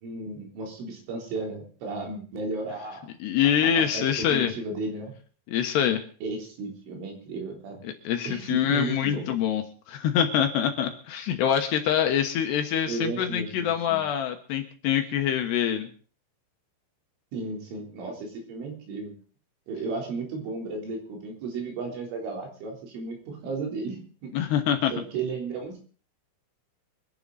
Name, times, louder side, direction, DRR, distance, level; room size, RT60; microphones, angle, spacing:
voice 1, 0.0-3.1 3.4-5.1 6.2-7.8 8.3-9.3 12.9-14.0 17.3-19.1 19.7-24.3 24.9-25.8, right 3 dB, 75° right, 1 dB, 6.2 m, -34 dB
voice 2, 3.2-4.5 5.5-6.0 7.8-15.9 24.3-24.9, left 9 dB, 70° left, 6 dB, 3.0 m, -25 dB
24.5 x 11.0 x 4.1 m, 0.41 s
omnidirectional pair, 5.6 m